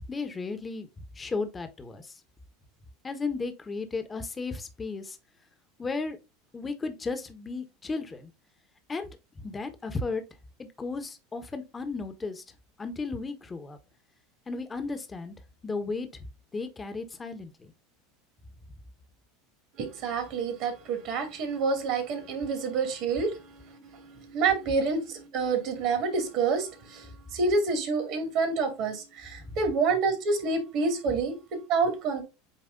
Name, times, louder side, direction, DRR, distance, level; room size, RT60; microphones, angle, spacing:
voice 1, 0.1-0.9 1.1-2.2 3.0-5.2 5.8-6.2 6.5-8.3 8.9-9.1 9.3-10.2 10.6-12.4 12.8-13.8 14.5-15.3 15.6-16.3 16.5-17.7 29.4-29.6, left 3 dB, 20° left, 1.2 m, -34 dB
voice 2, 19.8-31.3 31.7-32.2, right 4 dB, 55° right, 2.5 m, -28 dB
8.4 x 3.0 x 3.9 m
hypercardioid pair, 85°, 0 cm